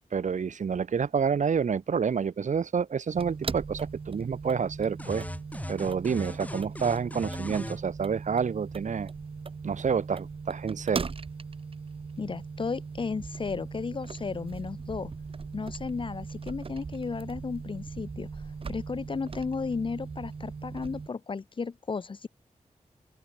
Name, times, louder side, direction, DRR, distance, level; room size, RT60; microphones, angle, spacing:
voice 1, 0.1-5.3 5.7-9.1 9.6-11.1, right 6 dB, 70° right, 3.3 m, -28 dB
sound 1, 3.1-21.1, right 4 dB, 45° right, 2.9 m, -39 dB
sound 2, 5.0-7.8, left 1 dB, 10° left, 3.0 m, -38 dB
voice 2, 12.2-15.1 15.5-18.3 18.7-22.3, left 4 dB, 40° left, 1.0 m, -34 dB
open air
wide cardioid pair, 165°, 13 cm